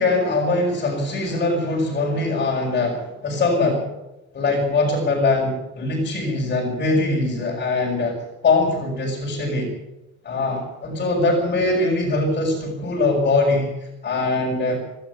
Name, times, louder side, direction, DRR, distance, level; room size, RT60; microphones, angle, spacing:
voice 1, 0.0-3.9 4.3-9.7 10.2-14.8, left 2 dB, 30° left, -3 dB, 6.5 m, -22 dB
26.0 x 12.5 x 8.5 m, 0.96 s
cardioid pair, 140°, 31 cm